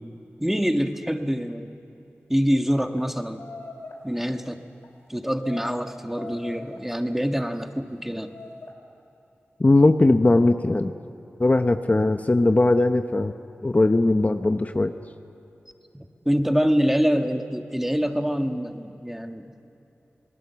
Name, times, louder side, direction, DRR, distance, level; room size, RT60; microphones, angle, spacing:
voice 1, 0.4-1.7 2.3-3.4 4.0-4.6 5.1-8.3 15.9-19.5, equal, 5° right, 6 dB, 1.5 m, -25 dB
sound 1, 3.0-3.1 3.4-4.0 4.7-4.9 5.4-5.8 6.1-6.9 7.6-7.8 8.3-8.7, left 3 dB, 90° left, 2.7 m, -41 dB
voice 2, 9.6-10.9 11.4-13.3 13.6-14.9, left 2 dB, 35° left, 8 dB, 0.8 m, -19 dB
26.5 x 19.0 x 7.0 m, 2.9 s
cardioid pair, 50°, 4 cm